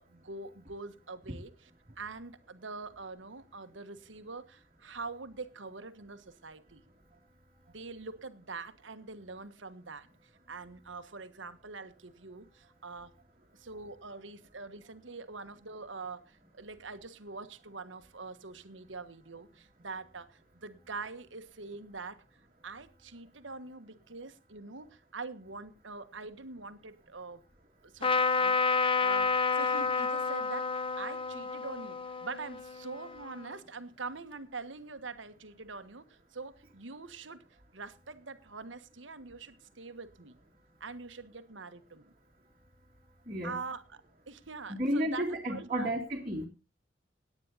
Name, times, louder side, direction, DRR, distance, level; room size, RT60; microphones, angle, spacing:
voice 1, 0.0-1.7 2.0-6.8 7.7-10.1 10.5-13.1 13.5-22.2 22.6-27.4 27.8-37.4 37.7-40.4 40.8-42.1 43.4-44.0 44.3-45.9, right 4 dB, 90° right, 10 dB, 1.4 m, -44 dB
Trumpet, 28.0-33.5, left 5 dB, 30° left, 0.8 m, -30 dB
voice 2, 44.8-46.5, equal, 30° right, -5 dB, 2.4 m, -32 dB
17.5 x 9.7 x 4.1 m, 0.30 s
head